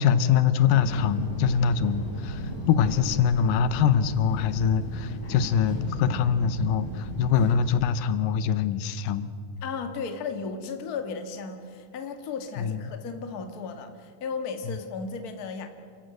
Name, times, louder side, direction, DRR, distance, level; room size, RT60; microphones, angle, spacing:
voice 1, 0.0-9.3 12.6-12.8 14.7-14.8, left 7 dB, 85° left, 13 dB, 2.4 m, -24 dB
sound 1, 0.6-7.8, left 1 dB, 65° left, 5.3 m, -35 dB
voice 2, 9.6-15.7, left 5 dB, 40° left, 6 dB, 1.5 m, -35 dB
28.0 x 14.5 x 7.8 m, 2.2 s
omnidirectional pair, 3.8 m